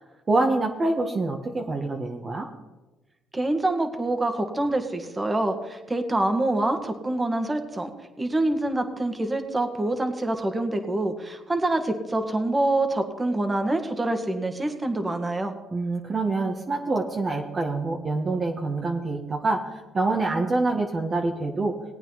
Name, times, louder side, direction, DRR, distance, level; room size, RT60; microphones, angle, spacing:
voice 1, 0.3-2.5 15.7-21.7, right 2 dB, 35° right, 1 dB, 1.5 m, -26 dB
voice 2, 3.3-7.9 8.2-15.5, right 2 dB, 20° right, 6 dB, 1.9 m, -26 dB
19.5 x 8.9 x 4.1 m, 1.1 s
supercardioid pair, 70°, 0 cm